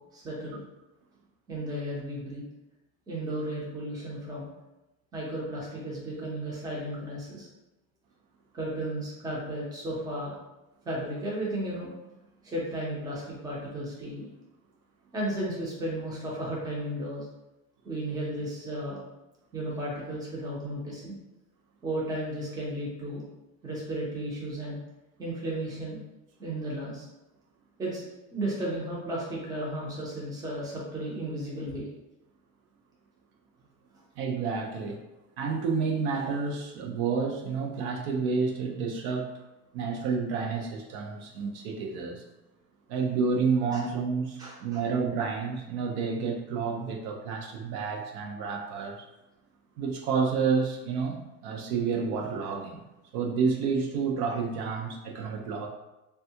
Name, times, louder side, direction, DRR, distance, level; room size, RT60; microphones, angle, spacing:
voice 1, 0.1-0.6 1.5-2.4 3.1-4.5 5.1-7.5 8.5-10.4 10.8-11.9 12.4-14.3 15.1-17.3 17.8-19.0 19.5-21.2 21.8-23.2 23.6-24.8 25.2-26.0 26.4-27.1 27.8-31.9 43.7-43.9 44.4-44.8, right 1 dB, 10° right, -5 dB, 0.6 m, -34 dB
voice 2, 34.2-35.0 35.4-39.4 39.7-42.2 42.9-49.1 49.8-52.8 53.1-55.7, right 5 dB, 65° right, 1 dB, 0.5 m, -30 dB
3.3 x 2.3 x 2.7 m, 1.0 s
cardioid pair, 175°, 32 cm